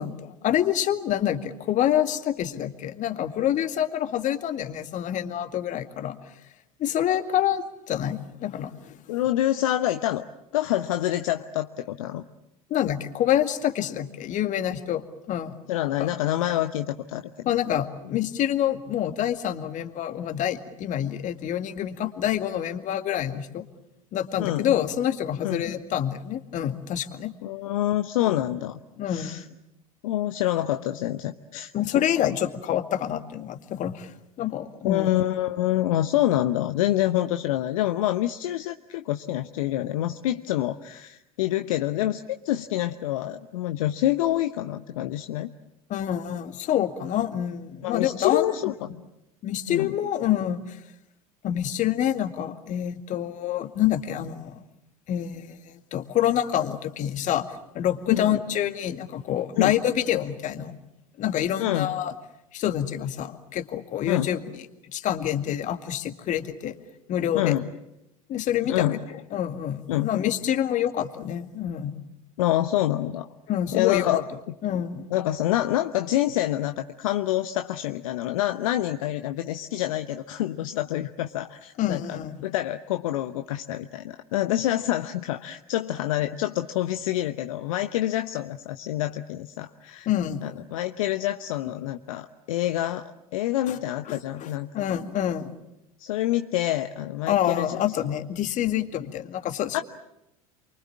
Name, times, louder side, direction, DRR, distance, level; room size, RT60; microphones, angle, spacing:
voice 1, 0.0-6.2 6.8-9.0 12.7-15.5 16.0-16.1 17.5-23.7 24.1-27.3 28.2-28.4 29.0-29.4 31.7-34.1 34.4-35.1 45.9-48.5 49.4-50.8 51.4-54.6 55.1-57.5 57.7-60.8 61.2-62.1 62.5-64.4 64.9-66.7 67.1-67.5 68.3-68.9 69.3-72.0 73.5-74.2 74.6-75.1 81.8-82.4 90.1-90.4 93.7-93.8 94.1-94.5 94.7-95.5 97.3-99.8, left 11 dB, 45° left, 8 dB, 2.1 m, -27 dB
voice 2, 9.1-10.2 10.5-12.2 15.7-17.5 24.4-24.7 25.4-25.6 27.4-28.8 29.1-29.4 30.0-32.4 34.8-45.5 47.8-49.0 49.7-49.9 58.1-58.3 59.6-59.8 61.6-61.9 64.1-64.3 67.3-67.6 68.7-69.0 69.9-70.1 72.4-73.3 73.7-74.2 75.1-90.1 90.4-94.8 96.0-98.0 99.7-99.8, left 14 dB, 65° left, 8 dB, 0.9 m, -27 dB
29.0 x 24.0 x 7.4 m, 0.88 s
figure-of-eight pair, 70°, 19 cm